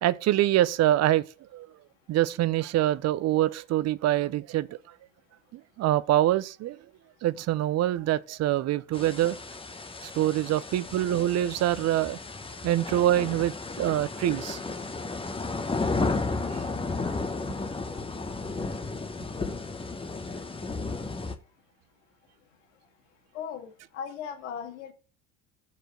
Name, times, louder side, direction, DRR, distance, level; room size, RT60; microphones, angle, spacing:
voice 1, 0.0-1.2 1.5-1.7 2.1-4.7 5.8-6.8 7.2-9.4 10.0-12.2 12.6-14.6, right 13 dB, 45° right, 0.6 m, -25 dB
sound 1, 8.9-21.3, left 3 dB, 15° left, 1.1 m, -33 dB
voice 2, 23.3-24.9, left 7 dB, 85° left, 1.8 m, -37 dB
6.7 x 5.0 x 6.1 m
supercardioid pair, 85°, 36 cm